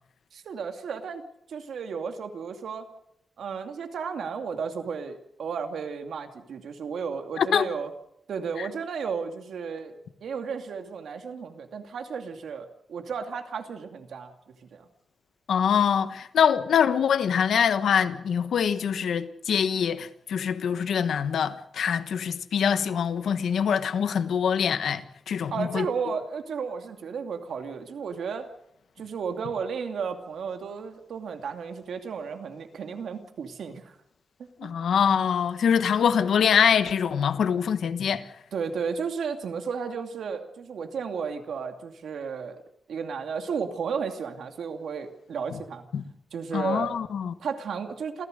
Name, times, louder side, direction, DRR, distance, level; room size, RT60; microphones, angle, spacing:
voice 1, 0.3-1.2 1.5-2.9 3.4-7.9 8.3-14.3 14.7-14.9 25.5-28.5 29.0-33.9 34.6-34.7 38.5-42.6 42.9-45.8 46.3-46.9 47.4-48.3, right 6 dB, 85° right, 2.5 m, -33 dB
voice 2, 7.4-7.7 8.6-8.7 15.5-25.8 34.6-38.2 45.9-46.0 46.5-47.3, left 7 dB, 90° left, 1.3 m, -24 dB
27.5 x 15.5 x 6.6 m
wide cardioid pair, 135°, 0 cm